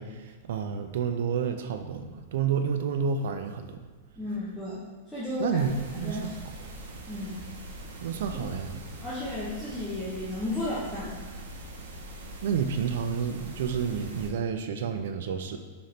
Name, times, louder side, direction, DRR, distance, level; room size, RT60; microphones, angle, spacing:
voice 1, 0.0-3.8 5.4-6.4 8.0-8.8 12.4-15.6, right 6 dB, 65° right, 7 dB, 0.4 m, -30 dB
voice 2, 4.2-5.6 5.9-6.3 7.1-7.4 8.9-11.2, left 2 dB, 5° left, -11 dB, 0.7 m, -34 dB
sound 1, 5.5-14.3, right 1 dB, 80° right, 0.8 m, -42 dB
4.2 x 3.8 x 3.2 m, 1.4 s
supercardioid pair, 165°, 0 cm